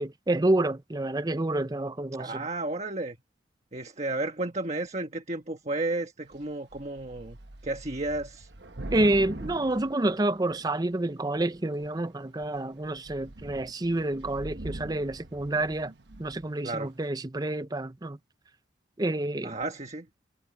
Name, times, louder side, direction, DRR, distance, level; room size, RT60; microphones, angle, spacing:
voice 1, 0.0-2.5 8.9-15.9 16.2-18.2 19.0-19.6, right 2 dB, 20° right, 0.6 m, -28 dB
voice 2, 2.2-3.2 3.7-7.4 7.6-8.5 16.6-16.9 19.4-20.1, right 2 dB, 35° right, 1.4 m, -32 dB
Thunder / Rain, 6.3-6.5 6.7-10.8 11.6-12.0 12.4-12.6 12.8-16.6, right 2 dB, 60° right, 1.2 m, -43 dB
head